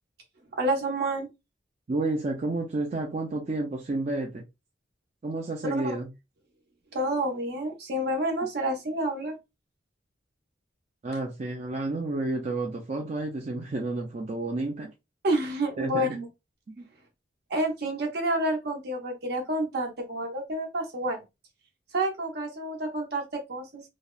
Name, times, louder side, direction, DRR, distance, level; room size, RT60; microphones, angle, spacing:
voice 1, 0.5-1.3 5.7-6.0 6.9-9.4 15.2-16.3 17.5-21.2 21.9-23.8, right 1 dB, 60° right, 0.8 m, -29 dB
voice 2, 1.9-4.4 5.2-6.1 11.0-14.9 15.8-16.1 16.8-16.9, right 2 dB, 40° right, 0.4 m, -30 dB
2.7 x 2.1 x 2.3 m
head